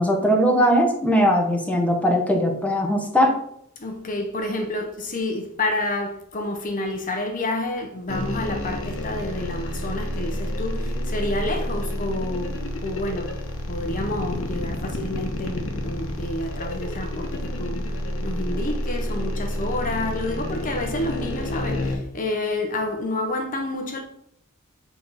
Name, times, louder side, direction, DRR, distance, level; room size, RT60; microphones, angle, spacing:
voice 1, 0.0-3.4, equal, 5° left, 1.1 m, -20 dB
voice 2, 3.8-12.5 12.8-13.3 13.7-24.0, left 2 dB, 40° left, 1.0 m, -29 dB
sound 1, 8.1-22.0, left 1 dB, 65° left, 1.3 m, -29 dB
8.4 x 3.9 x 5.7 m
head